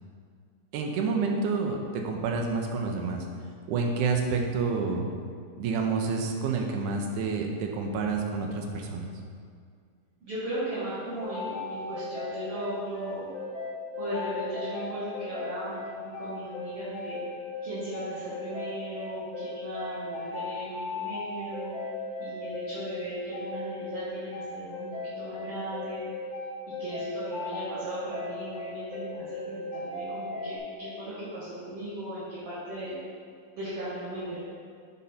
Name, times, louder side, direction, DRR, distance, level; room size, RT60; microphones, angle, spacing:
voice 1, 0.7-3.3 3.7-5.1 5.6-9.1, right 4 dB, 80° right, 2 dB, 2.2 m, -28 dB
voice 2, 10.2-13.3 14.0-17.2 17.6-21.7 22.2-26.1 26.8-33.0 33.6-34.4, right 1 dB, 50° right, -12 dB, 2.3 m, -37 dB
sound 1, 11.2-30.6, left 3 dB, 80° left, 1.0 m, -36 dB
9.0 x 4.2 x 4.3 m, 2.1 s
omnidirectional pair, 3.6 m